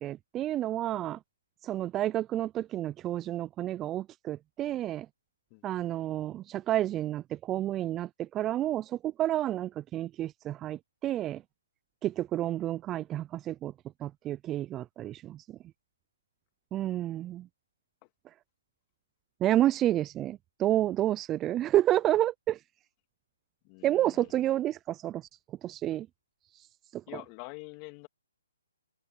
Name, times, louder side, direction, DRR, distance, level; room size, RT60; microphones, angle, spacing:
voice 1, 0.0-1.2 1.6-5.1 5.6-11.4 12.0-13.7 14.0-15.4 16.7-17.5 19.4-22.6 23.8-25.2 25.6-26.1 26.9-27.0, right 13 dB, 20° right, 0.4 m, -30 dB
voice 2, 23.6-24.5 27.1-28.1, left 31 dB, 30° left, 2.3 m, -46 dB
hypercardioid pair, 140°, 0 cm